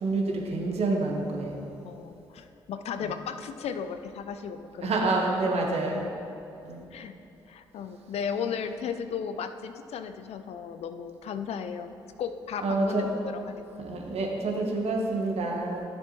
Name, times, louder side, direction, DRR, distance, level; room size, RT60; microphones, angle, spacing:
voice 1, 0.0-1.6 4.8-6.0 6.6-6.8 12.6-13.1 13.8-15.8, right 3 dB, 55° right, 0 dB, 1.4 m, -28 dB
voice 2, 1.8-4.9 5.6-6.1 6.9-7.1 7.5-11.9 12.2-14.0, left 7 dB, 60° left, 9 dB, 0.5 m, -35 dB
11.5 x 7.0 x 3.1 m, 2.7 s
hypercardioid pair, 40°, 12 cm